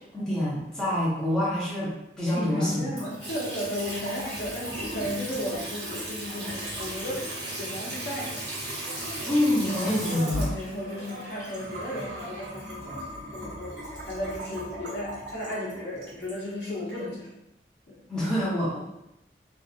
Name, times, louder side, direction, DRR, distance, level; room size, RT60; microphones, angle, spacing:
voice 1, 0.1-3.0 9.3-10.5 18.1-18.8, left 1 dB, 5° left, -9 dB, 0.7 m, -26 dB
voice 2, 2.3-8.5 9.6-13.8 14.0-17.3 17.9-18.0, left 1 dB, 80° left, -5 dB, 0.8 m, -34 dB
Water tap faucet / Sink (filling or washing) / Trickle dribble, 2.9-17.0, right 1 dB, 85° right, 1.2 m, -37 dB
Crowd, 6.3-12.5, right 1 dB, 55° right, 0.8 m, -45 dB
2.8 x 2.5 x 2.4 m, 0.85 s
head